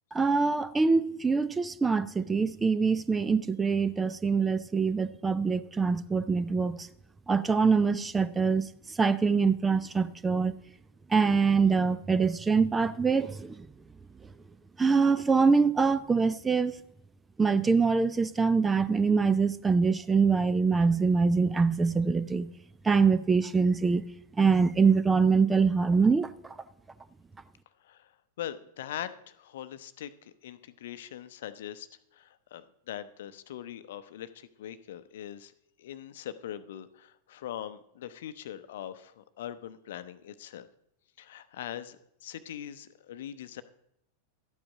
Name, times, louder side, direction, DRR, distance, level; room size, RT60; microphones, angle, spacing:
voice 1, 0.1-6.9 7.3-10.5 11.1-13.7 14.8-16.7 17.4-22.5 22.8-24.0 24.4-26.5, right 5 dB, 15° right, 0.5 m, -24 dB
voice 2, 28.4-35.5 35.8-40.7 41.2-43.6, left 11 dB, 55° left, 0.7 m, -42 dB
12.5 x 8.8 x 4.9 m
figure-of-eight pair, 90°, 0 cm